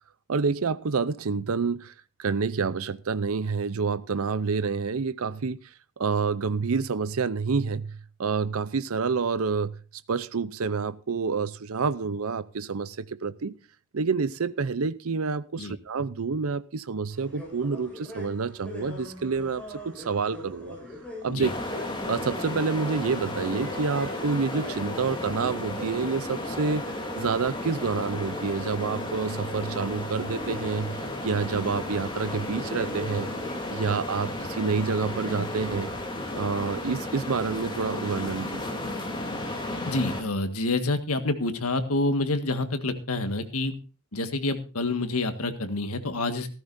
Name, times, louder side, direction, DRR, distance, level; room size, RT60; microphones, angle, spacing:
voice 1, 0.3-1.9 2.2-5.6 6.0-9.7 10.1-13.6 13.9-20.8 21.2-21.5 22.1-26.9 27.2-33.3 33.7-35.9 36.3-38.6, right 5 dB, 65° right, 0.6 m, -28 dB
sound 1, 17.1-36.1, left 1 dB, 5° left, 8.0 m, -42 dB
sound 2, 21.4-40.2, left 1 dB, 20° left, 2.9 m, -34 dB
voice 2, 39.8-43.7 44.1-46.5, left 2 dB, 75° left, 1.7 m, -27 dB
16.0 x 14.0 x 2.6 m
head